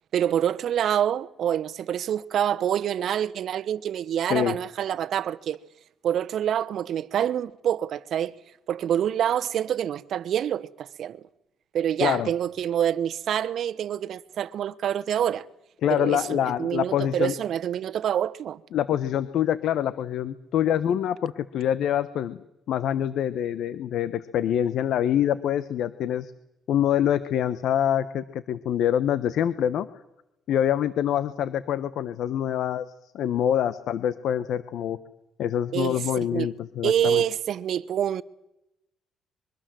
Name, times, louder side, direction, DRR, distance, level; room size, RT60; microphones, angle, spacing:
voice 1, 0.1-5.6 6.0-8.3 8.7-11.2 11.7-15.4 15.9-18.6 35.7-36.5 36.8-38.2, right 10 dB, 70° right, 1.1 m, -26 dB
voice 2, 12.0-12.3 15.8-17.3 18.7-22.4 22.7-26.3 26.7-29.9 30.5-32.9 33.1-35.0 35.4-37.2, left 10 dB, 75° left, 1.1 m, -25 dB
24.5 x 23.0 x 7.7 m
cardioid pair, 90°, 0 cm